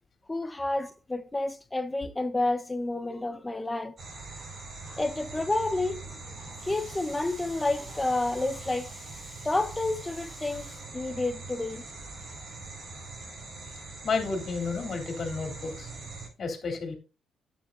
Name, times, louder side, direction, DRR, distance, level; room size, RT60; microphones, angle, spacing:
voice 1, 0.3-3.9 4.9-6.0 6.6-11.8, left 2 dB, 15° left, 1.0 m, -30 dB
sound 1, 4.0-16.3, right 3 dB, 45° right, 5.0 m, -42 dB
voice 2, 14.0-15.9 16.4-16.9, left 4 dB, 45° left, 3.3 m, -31 dB
11.0 x 7.9 x 2.6 m
cardioid pair, 90°, 0 cm